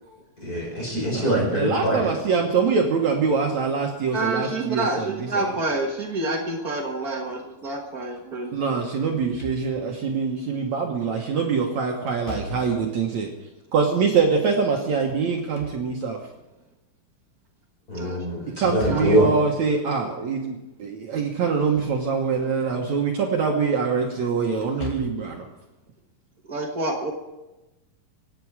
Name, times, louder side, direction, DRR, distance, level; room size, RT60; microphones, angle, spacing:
voice 1, 0.4-2.1 17.9-19.3, right 1 dB, 25° left, -2 dB, 5.2 m, -23 dB
voice 2, 1.1-5.5 8.3-13.3 13.7-16.2 18.6-25.5, right 5 dB, 60° right, 0 dB, 2.2 m, -24 dB
voice 3, 4.1-8.5 17.9-18.2 18.9-19.1 26.5-27.1, right 2 dB, 85° right, 1 dB, 0.8 m, -28 dB
Slam / Thump thud, 9.2-10.1 12.1-13.0 15.2-16.3 18.6-19.4 21.5-22.0 22.4-22.5 24.5-25.3, left 2 dB, 55° left, 3.5 m, -38 dB
25.5 x 9.3 x 4.9 m, 1.0 s
omnidirectional pair, 4.3 m